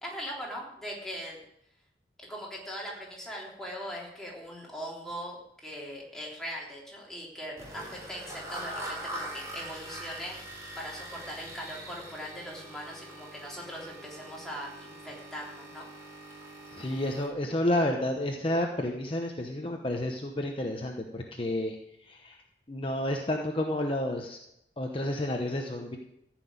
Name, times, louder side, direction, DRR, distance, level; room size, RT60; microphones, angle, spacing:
voice 1, 0.0-1.4 2.2-10.4 10.8-15.9, equal, 5° left, -4 dB, 3.5 m, -40 dB
sound 1, 7.6-17.3, right 1 dB, 15° right, 3.4 m, -43 dB
voice 2, 16.7-21.7 22.0-22.4 22.7-24.4 24.8-26.0, left 1 dB, 30° left, 2 dB, 1.0 m, -30 dB
14.5 x 6.2 x 9.5 m, 0.80 s
head